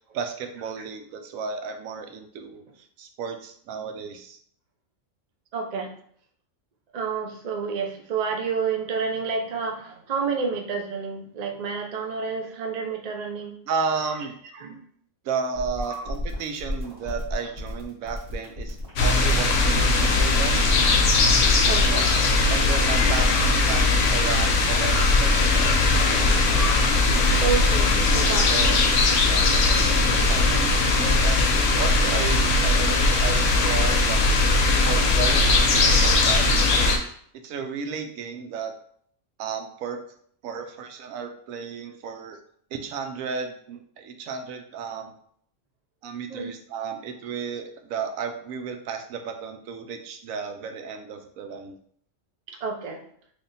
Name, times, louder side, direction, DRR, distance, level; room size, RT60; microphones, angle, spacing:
voice 1, 0.0-2.6 3.0-4.4 13.7-14.4 15.2-18.8 19.0-20.9 22.5-25.8 26.1-26.6 28.5-28.7 29.2-34.3 34.8-37.0 37.4-38.7 39.4-40.0 40.4-42.4 42.7-45.1 46.0-51.8, right 6 dB, 90° right, 6 dB, 1.0 m, -33 dB
voice 2, 5.5-5.9 6.9-13.5 14.5-14.8 15.8-16.0 21.6-22.1 27.4-28.8 46.3-46.5 52.5-53.0, right 5 dB, 50° right, 2 dB, 0.5 m, -29 dB
sound 1, 15.6-21.8, left 1 dB, 25° right, 1.4 m, -33 dB
sound 2, 19.0-37.0, left 3 dB, 70° left, 1.0 m, -20 dB
3.4 x 2.4 x 4.0 m, 0.63 s
omnidirectional pair, 1.4 m